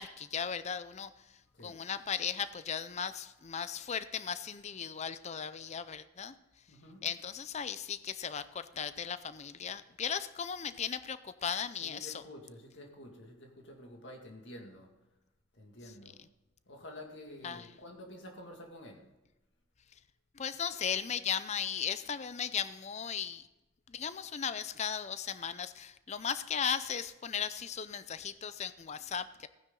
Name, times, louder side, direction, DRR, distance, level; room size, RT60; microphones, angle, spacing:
voice 1, 0.0-6.4 7.0-12.2 17.4-17.7 20.3-23.5 23.9-29.5, left 7 dB, 35° left, 14 dB, 0.5 m, -37 dB
voice 2, 6.7-7.1 11.8-14.9 15.5-16.2 16.7-19.0, left 1 dB, 60° left, 3 dB, 2.1 m, -49 dB
15.0 x 9.8 x 3.8 m, 1.0 s
head